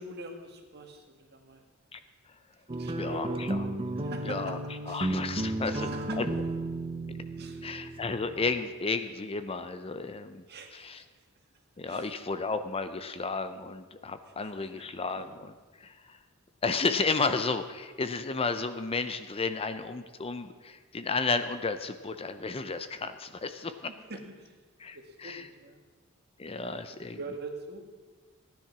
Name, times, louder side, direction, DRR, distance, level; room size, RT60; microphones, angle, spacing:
voice 1, 0.0-1.6 2.7-3.4 3.9-4.5 4.9-5.4 5.6-6.2 7.4-7.7 10.5-11.1 11.8-12.1 14.2-14.8 15.1-15.2 23.9-24.6 24.9-25.8 26.6-27.8, right 2 dB, 50° right, 4 dB, 1.8 m, -44 dB
sound 1, 2.7-8.6, right 1 dB, 25° right, 0.7 m, -33 dB
voice 2, 3.0-3.5 4.2-4.6 4.9-5.7 6.2-6.3 7.6-10.4 10.7-11.0 11.8-15.3 15.8-16.2 16.6-23.7 24.8-25.4 26.4-27.2, left 4 dB, 25° left, 10 dB, 0.6 m, -32 dB
15.5 x 10.5 x 6.0 m, 1.4 s
head